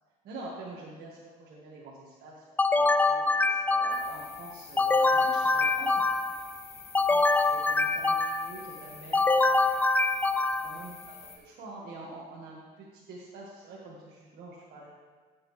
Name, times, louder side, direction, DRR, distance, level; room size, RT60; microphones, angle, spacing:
voice 1, 0.2-5.9 7.0-9.7 10.6-14.9, right 2 dB, 70° right, -5 dB, 1.7 m, -46 dB
sound 1, 2.6-4.2 4.8-6.5 6.9-8.6 9.1-10.8, left 3 dB, 10° left, 0.4 m, -25 dB
sound 2, 3.9-11.4, left 5 dB, 40° left, 2.1 m, -48 dB
15.0 x 7.6 x 3.3 m, 1.5 s
cardioid pair, 110°, 17 cm